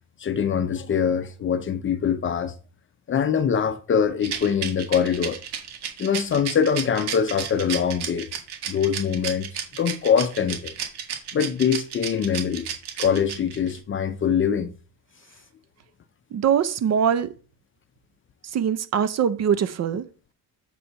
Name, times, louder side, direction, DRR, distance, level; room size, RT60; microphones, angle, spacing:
voice 1, 0.2-2.5 3.1-5.4 6.0-8.3 8.7-10.7 11.3-12.7 13.0-14.7, left 7 dB, 30° left, 0.6 m, -23 dB
Rattle, 4.2-13.8, right 9 dB, 75° right, 1.9 m, -32 dB
voice 2, 16.3-17.3 18.5-20.0, right 8 dB, 40° right, 0.6 m, -22 dB
7.7 x 4.3 x 5.6 m
cardioid pair, 165°, 40 cm